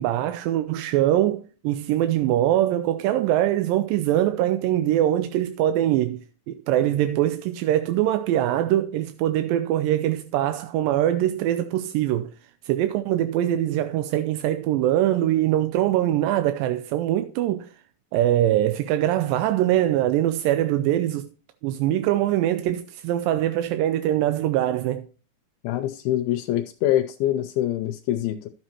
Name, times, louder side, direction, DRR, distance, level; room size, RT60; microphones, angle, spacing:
voice 1, 0.0-12.3 12.7-17.7 18.1-21.3 21.6-25.1, right 12 dB, 80° right, 2.1 m, -23 dB
voice 2, 25.6-28.5, left 13 dB, 85° left, 2.4 m, -25 dB
12.0 x 7.4 x 2.9 m
omnidirectional pair, 4.4 m